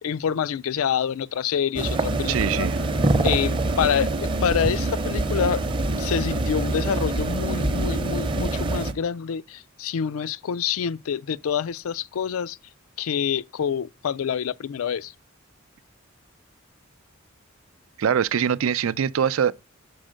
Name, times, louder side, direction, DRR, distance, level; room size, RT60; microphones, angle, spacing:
voice 1, 0.0-2.7 3.2-4.1 4.4-5.6 6.0-12.6 13.0-15.1, left 7 dB, 85° left, 0.4 m, -26 dB
sound 1, 1.8-8.9, right 2 dB, 25° right, 0.7 m, -25 dB
voice 2, 2.3-2.8 18.0-19.5, right 8 dB, 75° right, 0.4 m, -23 dB
6.3 x 4.3 x 6.3 m
head